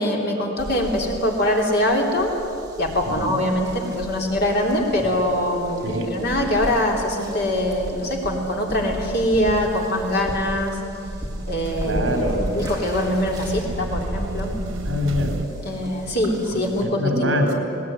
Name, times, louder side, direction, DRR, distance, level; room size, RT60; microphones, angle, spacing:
voice 1, 0.0-2.3 2.8-10.8 11.5-14.5 15.6-17.4, left 1 dB, 55° left, 0 dB, 3.5 m, -23 dB
sound 1, 0.6-16.8, equal, 20° right, 3.4 m, -34 dB
sound 2, 8.5-15.5, right 2 dB, 85° right, 1.4 m, -35 dB
voice 2, 11.8-12.4 14.8-15.3 16.5-17.5, left 1 dB, 60° right, 3 dB, 4.1 m, -24 dB
19.5 x 19.0 x 9.6 m, 2.8 s
head